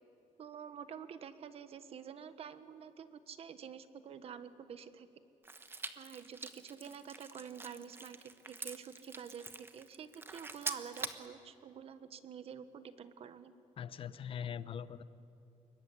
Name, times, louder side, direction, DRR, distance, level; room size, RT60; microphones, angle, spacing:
voice 1, 0.4-5.1 6.0-13.5, right 7 dB, 50° right, 11 dB, 1.4 m, -48 dB
sound 1, 5.4-11.3, right 3 dB, 15° right, 1.2 m, -45 dB
voice 2, 13.8-15.0, left 8 dB, 45° left, 14 dB, 0.9 m, -41 dB
27.0 x 22.5 x 9.9 m, 2.7 s
cardioid pair, 170°, 13 cm